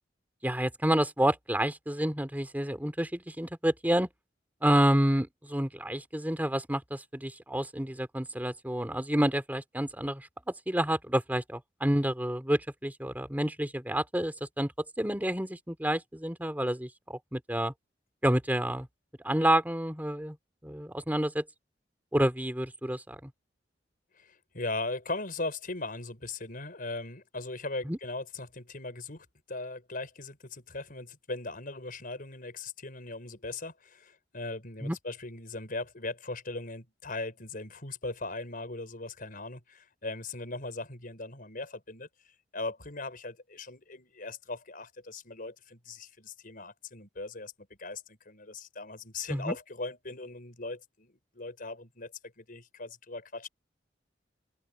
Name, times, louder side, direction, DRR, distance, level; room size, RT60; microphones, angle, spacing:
voice 1, 0.4-4.1 4.6-14.7 15.0-17.7 18.2-18.9 19.2-20.4 20.6-21.4 22.1-23.3 27.8-28.0 34.8-35.0 49.3-49.5, right 1 dB, 10° right, 2.8 m, -29 dB
voice 2, 24.2-42.1 42.5-47.5 47.8-53.5, left 2 dB, 50° left, 5.5 m, -39 dB
open air
head